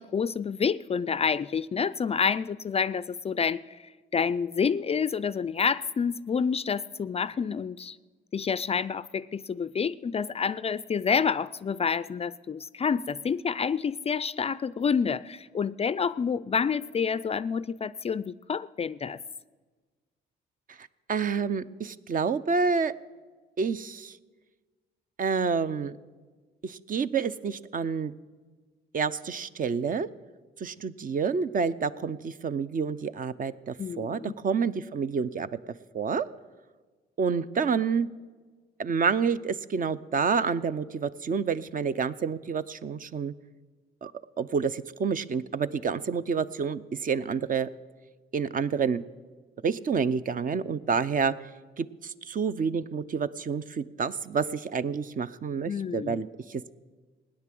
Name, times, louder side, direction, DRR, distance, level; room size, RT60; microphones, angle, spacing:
voice 1, 0.0-8.0 8.3-19.2 33.8-34.3 55.7-56.2, left 6 dB, 30° left, 18 dB, 0.4 m, -28 dB
voice 2, 20.8-22.9 23.6-24.2 25.2-26.0 26.6-28.1 28.9-30.1 30.6-35.5 35.9-36.3 37.2-38.1 38.8-43.3 44.0-44.1 44.4-47.7 48.3-49.0 49.6-51.3 51.8-56.7, right 5 dB, 45° right, 14 dB, 0.6 m, -28 dB
17.0 x 9.8 x 7.6 m, 1.4 s
cardioid pair, 90°, 20 cm